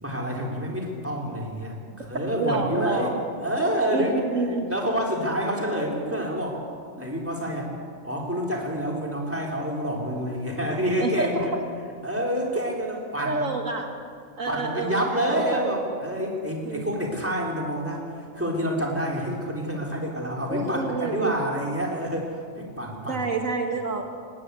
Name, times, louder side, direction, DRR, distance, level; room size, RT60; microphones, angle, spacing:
voice 1, 0.0-4.2 4.7-6.6 7.0-7.7 8.0-11.5 12.0-13.5 14.5-23.2, equal, 10° right, -1 dB, 3.7 m, -28 dB
voice 2, 2.4-3.1 3.9-4.7 11.0-11.5 13.2-13.9 14.4-15.7 16.7-16.9 20.5-21.4 23.1-24.0, right 3 dB, 80° right, 4 dB, 2.1 m, -28 dB
20.5 x 17.0 x 8.3 m, 2.2 s
omnidirectional pair, 1.4 m